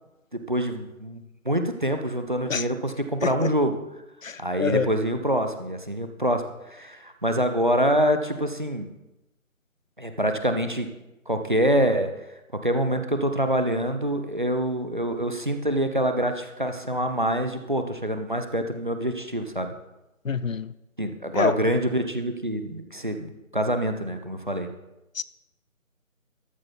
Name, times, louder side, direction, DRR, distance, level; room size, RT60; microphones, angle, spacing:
voice 1, 0.3-3.8 4.4-8.9 10.0-10.9 11.3-12.1 12.6-19.7 21.0-24.7, equal, 35° right, 6 dB, 0.7 m, -25 dB
voice 2, 4.2-4.9 20.2-20.7 21.3-21.6 25.1-25.2, left 5 dB, 65° left, 16 dB, 0.6 m, -26 dB
13.5 x 8.7 x 3.9 m, 0.95 s
figure-of-eight pair, 160°, 43 cm